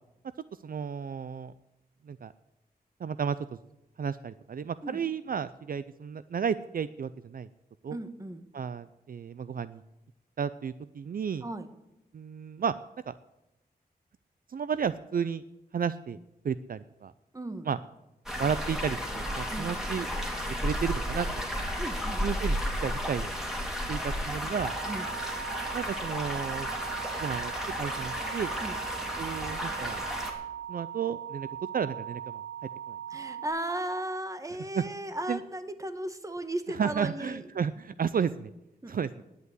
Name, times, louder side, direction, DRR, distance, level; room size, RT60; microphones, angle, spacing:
voice 1, 0.6-1.5 2.1-2.3 3.0-3.4 4.0-7.5 7.8-8.0 8.5-9.8 10.4-11.4 12.1-12.7 13.1-13.2 14.5-15.4 15.7-16.2 16.4-17.1 17.7-17.8 18.4-20.1 20.6-21.3 22.2-22.6 22.8-23.3 23.9-24.8 25.7-26.7 27.2-27.5 27.8-28.5 29.2-30.0 30.7-31.5 31.7-32.4 32.9-33.0 34.7-34.8 35.3-35.4 36.8-38.5 38.9-39.1, right 7 dB, 60° right, 15 dB, 0.4 m, -32 dB
voice 2, 7.9-8.5 11.4-11.7 17.3-17.7 19.5-19.7 21.8-22.2 24.9-25.1 28.6-28.8 33.1-37.4 38.8-39.1, right 1 dB, 20° right, 10 dB, 1.2 m, -36 dB
sound 1, 18.3-30.3, equal, 5° right, 2.6 m, -33 dB
sound 2, 24.6-33.5, right 10 dB, 80° right, 1.1 m, -40 dB
10.5 x 8.2 x 9.5 m, 0.92 s
wide cardioid pair, 85°, 16 cm